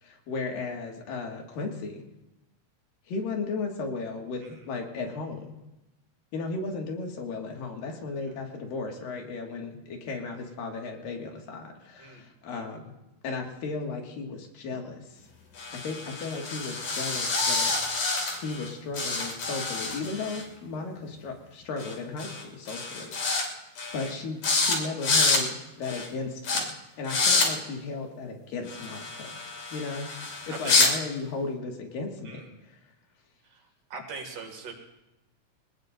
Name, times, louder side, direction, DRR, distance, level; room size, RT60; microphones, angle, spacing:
voice 1, 0.0-2.1 3.1-5.6 6.3-12.9 13.2-15.2 15.7-17.7 18.4-23.5 23.9-26.7 27.0-29.4 29.7-30.1 30.5-32.4, left 3 dB, 90° left, 1 dB, 3.7 m, -35 dB
sound 1, 15.6-18.7 18.9-20.4 21.8-21.9 22.2-22.4 22.7-23.4 23.8-24.1 24.4-24.8 25.0-25.4 25.8-26.1 26.4-26.6 27.0-27.5 28.7-30.9, left 3 dB, 60° left, 3.9 m, -27 dB
voice 2, 30.5-30.8 32.3-32.5 33.9-34.7, right 4 dB, 70° right, 2 dB, 3.9 m, -40 dB
24.5 x 19.5 x 2.6 m, 0.97 s
omnidirectional pair, 3.9 m